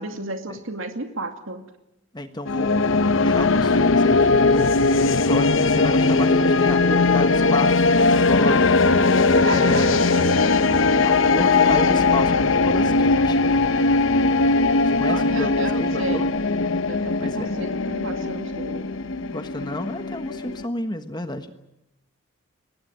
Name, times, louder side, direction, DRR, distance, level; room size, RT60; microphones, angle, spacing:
voice 1, 0.0-1.6 9.4-10.3 15.1-16.3 16.9-18.9, right 2 dB, 70° right, 5 dB, 2.3 m, -33 dB
voice 2, 2.1-9.0 9.4-10.4 11.0-13.4 14.9-15.5 15.8-16.3 17.2-17.5 19.3-21.6, left 1 dB, 20° left, 8 dB, 1.3 m, -31 dB
sound 1, 2.4-20.7, left 3 dB, 65° left, 0.9 m, -19 dB
23.5 x 19.0 x 9.3 m, 0.92 s
head